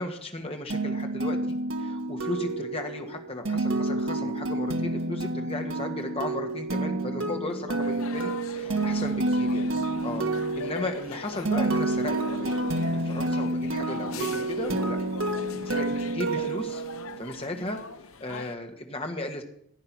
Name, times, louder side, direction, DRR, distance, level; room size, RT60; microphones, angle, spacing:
voice 1, 0.0-1.4 1.8-9.6 10.0-12.5 12.8-15.0 15.3-16.8 17.2-17.8 18.2-19.4, left 1 dB, 25° left, 4 dB, 1.6 m, -35 dB
sound 1, 0.7-17.4, right 2 dB, 60° right, 1.3 m, -29 dB
sound 2, 7.8-18.5, left 5 dB, 70° left, 0.8 m, -41 dB
sound 3, 8.6-16.6, equal, ahead, 4.8 m, -48 dB
15.5 x 8.9 x 6.1 m, 0.70 s
head